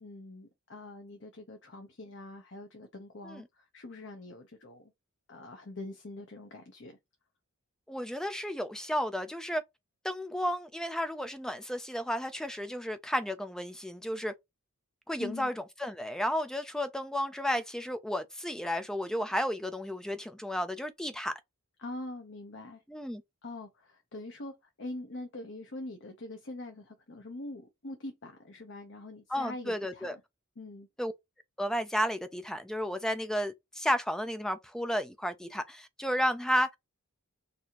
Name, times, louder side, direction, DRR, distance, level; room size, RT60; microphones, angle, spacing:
voice 1, 0.0-4.9 5.3-7.0 15.2-15.5 21.8-22.8 23.4-24.5 24.8-30.2 30.6-30.9, left 2 dB, 55° left, 0.9 m, -44 dB
voice 2, 7.9-9.6 10.0-14.3 15.1-15.5 15.8-21.3 22.9-23.2 29.3-30.2 31.0-31.1 31.6-36.7, equal, 5° left, 0.4 m, -32 dB
4.1 x 2.7 x 2.9 m
head